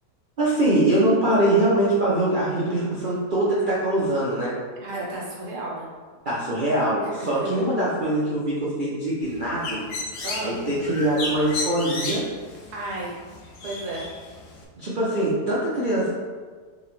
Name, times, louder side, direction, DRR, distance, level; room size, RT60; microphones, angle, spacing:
voice 1, 0.4-4.5 6.3-9.8 10.4-12.2 14.8-16.1, right 1 dB, 60° right, -8 dB, 0.5 m, -23 dB
voice 2, 4.8-5.9 7.0-7.7 10.2-10.6 12.7-13.2 13.6-14.0, right 2 dB, 80° right, -4 dB, 1.5 m, -33 dB
Bird, 9.2-14.6, left 2 dB, 85° left, 1.2 m, -34 dB
3.9 x 2.9 x 3.0 m, 1.5 s
omnidirectional pair, 1.7 m